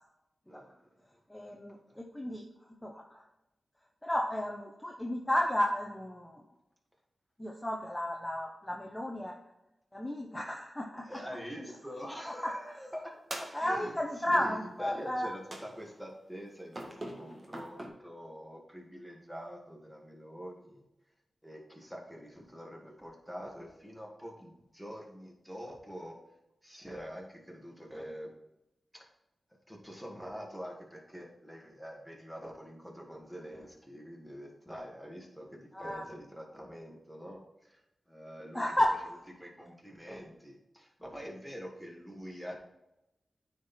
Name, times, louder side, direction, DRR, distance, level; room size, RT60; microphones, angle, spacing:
voice 1, 0.5-1.0 1.9-2.0 11.0-20.9 21.4-26.2 26.6-28.3 28.9-29.1 29.7-37.8 38.1-38.8 39.4-42.6, equal, ahead, -1 dB, 2.1 m, -45 dB
voice 2, 1.3-2.4 2.8-3.2 4.0-6.4 7.4-9.4 9.9-11.1 13.5-15.3 35.7-36.0 38.5-38.9, left 1 dB, 15° left, 0 dB, 1.0 m, -33 dB
sound 1, 13.3-14.1 15.5-16.1 16.7-17.9, right 1 dB, 30° right, 1.7 m, -43 dB
9.2 x 4.5 x 4.3 m, 0.93 s
cardioid pair, 70°, 0 cm